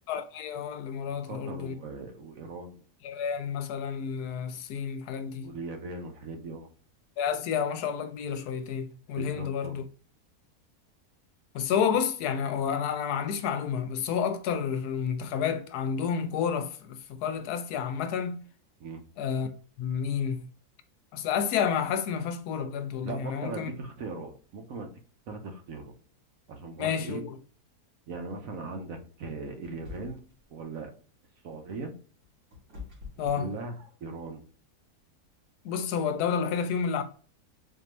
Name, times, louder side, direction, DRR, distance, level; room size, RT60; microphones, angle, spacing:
voice 1, 0.1-1.7 3.0-5.6 7.2-9.8 11.5-18.4 19.2-19.5 19.8-20.5 21.1-23.7 26.8-27.4 33.2-33.5 35.6-37.0, left 7 dB, 80° left, 1.1 m, -30 dB
voice 2, 1.1-2.8 5.4-6.7 9.2-9.8 18.8-19.0 23.0-24.9 25.3-25.9 26.5-27.2 28.1-30.2 30.5-30.9 31.4-31.9 33.2-33.7 34.0-34.4, right 3 dB, 65° right, 1.1 m, -39 dB
sound 1, 29.6-30.4 31.9-34.2, left 5 dB, 85° right, 2.5 m, -46 dB
4.5 x 2.6 x 3.0 m
omnidirectional pair, 1.7 m